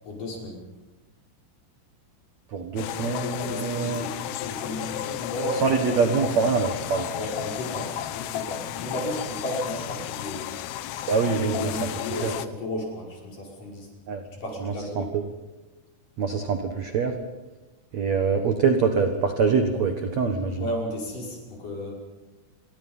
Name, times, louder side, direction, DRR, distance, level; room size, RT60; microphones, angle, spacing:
voice 1, 0.0-0.7 3.5-6.3 7.1-10.6 11.3-13.9 14.4-15.1 20.6-21.9, left 1 dB, 40° left, -2 dB, 7.0 m, -34 dB
voice 2, 2.5-4.1 5.6-7.1 11.1-11.9 12.2-12.3 14.1-14.2 14.6-15.2 16.2-17.1 17.9-20.6, right 5 dB, 75° right, 5 dB, 1.6 m, -24 dB
sound 1, 2.8-12.5, left 13 dB, 85° left, 2.1 m, -33 dB
29.5 x 24.5 x 5.6 m, 1.1 s
omnidirectional pair, 5.7 m